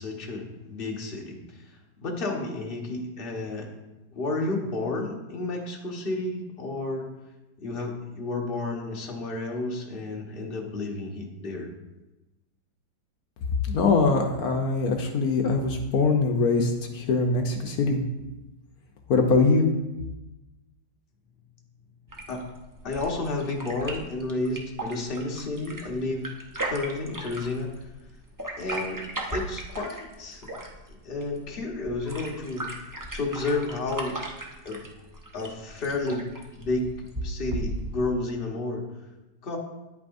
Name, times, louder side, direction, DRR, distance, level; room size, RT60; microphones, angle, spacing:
voice 1, 0.0-1.4 2.0-3.7 4.1-7.1 7.6-11.7 22.3-22.4 22.8-26.3 26.7-27.7 28.6-29.0 29.3-30.5 31.0-32.7 33.1-34.2 34.6-34.8 35.3-36.3 36.5-38.8 39.4-39.6, left 2 dB, 35° left, 0 dB, 1.3 m, -31 dB
voice 2, 13.7-18.0 19.1-19.6, left 3 dB, 60° left, 3 dB, 1.1 m, -22 dB
sound 1, 22.1-38.1, right 1 dB, 25° right, 0.4 m, -37 dB
10.5 x 8.3 x 2.6 m, 1.0 s
omnidirectional pair, 2.0 m